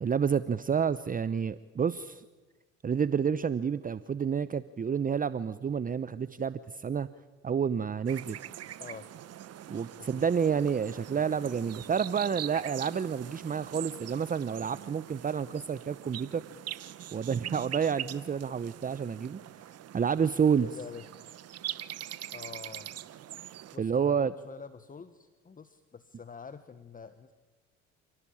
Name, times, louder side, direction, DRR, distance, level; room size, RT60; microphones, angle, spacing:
voice 1, 0.0-2.2 2.8-7.1 7.4-8.4 9.7-16.4 17.1-19.4 19.9-20.7 23.8-24.3, right 7 dB, 30° right, 16 dB, 0.8 m, -29 dB
sound 1, 8.1-23.8, right 11 dB, 55° right, 1.2 m, -43 dB
voice 2, 20.5-21.1 22.3-22.9 23.7-27.3, left 5 dB, 25° left, 12 dB, 1.4 m, -46 dB
28.5 x 18.0 x 8.8 m, 1.2 s
hypercardioid pair, 65°, 30 cm